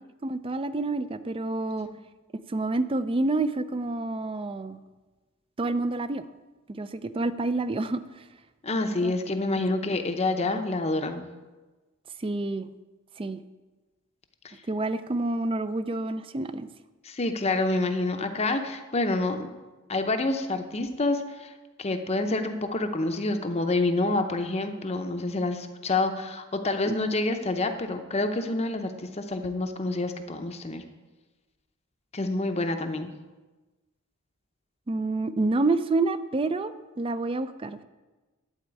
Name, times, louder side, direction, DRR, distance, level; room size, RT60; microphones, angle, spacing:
voice 1, 0.2-1.9 2.5-4.8 5.6-6.3 6.7-8.0 8.8-9.1 12.2-12.7 13.2-13.4 14.7-16.7 26.9-27.0 34.9-37.8, right 2 dB, 25° right, 13 dB, 0.4 m, -28 dB
voice 2, 8.6-11.3 14.4-14.5 17.0-19.5 19.9-21.5 21.8-30.8 32.1-33.1, left 2 dB, 30° left, 6 dB, 0.7 m, -27 dB
11.5 x 4.4 x 8.2 m, 1.2 s
head